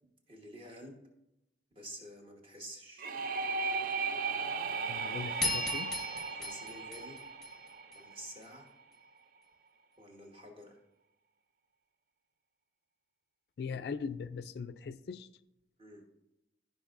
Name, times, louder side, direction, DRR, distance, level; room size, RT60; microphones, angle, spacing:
voice 1, 0.3-1.0 1.7-3.1 6.3-7.2 7.9-8.7 10.0-10.8 15.8-16.0, equal, 30° right, 1.3 m, -49 dB
sound 1, 3.0-8.6, right 4 dB, 50° right, 0.5 m, -36 dB
voice 2, 4.9-6.0 13.6-15.3, left 5 dB, 60° left, 0.3 m, -40 dB
sound 2, 5.4-8.0, left 2 dB, ahead, 1.4 m, -37 dB
15.0 x 5.3 x 2.5 m
head